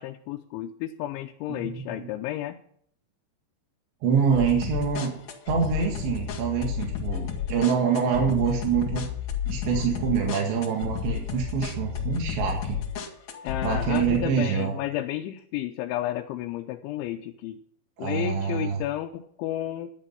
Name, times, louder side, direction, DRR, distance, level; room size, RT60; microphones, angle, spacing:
voice 1, 0.0-2.6 13.4-17.6 18.0-19.9, left 13 dB, 90° left, 3 dB, 3.1 m, -32 dB
voice 2, 1.5-2.1 4.0-5.2 5.5-9.0 9.5-12.8 13.6-14.8 18.0-18.8, right 7 dB, 75° right, 0 dB, 4.2 m, -26 dB
sound 1, 4.3-14.2, left 8 dB, 50° left, 2.8 m, -32 dB
11.0 x 11.0 x 5.8 m, 0.66 s
omnidirectional pair, 5.2 m